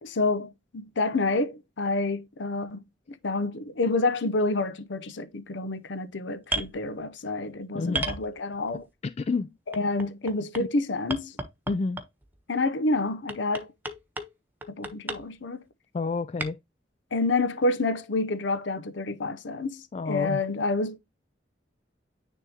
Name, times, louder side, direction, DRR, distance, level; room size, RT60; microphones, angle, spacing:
voice 1, 0.0-2.8 3.1-8.9 9.7-11.4 12.5-13.7 14.7-15.6 17.1-21.0, left 2 dB, 85° left, 0.7 m, -28 dB
sound 1, 6.4-6.7 7.9-8.7 9.7-10.6 11.1-12.2 13.3-14.3 14.6-15.2 16.4-16.5, right 2 dB, 10° right, 1.2 m, -32 dB
voice 2, 7.7-8.1 9.0-9.6 11.7-12.0 15.9-16.6 19.9-20.4, left 4 dB, 35° left, 0.3 m, -29 dB
9.9 x 3.6 x 2.8 m
head